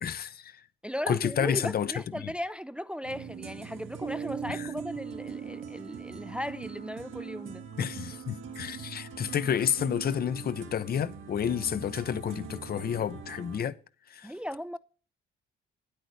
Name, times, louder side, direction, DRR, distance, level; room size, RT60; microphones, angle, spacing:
voice 1, 0.0-0.6 1.1-1.9 2.2-2.3 4.5-4.7 7.8-13.8 14.1-14.3, left 8 dB, 50° left, 0.7 m, -30 dB
voice 2, 0.8-7.6 14.2-14.8, equal, 5° right, 0.4 m, -37 dB
sound 1, 3.0-13.6, right 6 dB, 90° right, 1.5 m, -43 dB
Bass guitar, 4.0-7.5, right 7 dB, 35° right, 0.9 m, -41 dB
9.1 x 8.6 x 6.5 m
cardioid pair, 90°, 20 cm